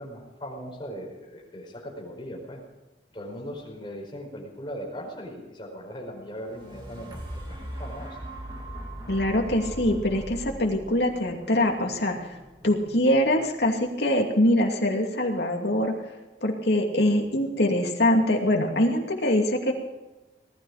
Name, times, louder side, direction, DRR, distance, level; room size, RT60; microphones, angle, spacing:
voice 1, 0.0-2.6 3.1-8.2, equal, 25° left, -1 dB, 4.9 m, -39 dB
sound 1, 6.3-14.4 14.9-15.0, right 1 dB, 25° right, 3.0 m, -40 dB
voice 2, 9.1-12.3 12.6-16.1 16.4-19.7, left 1 dB, 70° left, 1 dB, 2.6 m, -23 dB
19.0 x 13.0 x 5.0 m, 1.1 s
head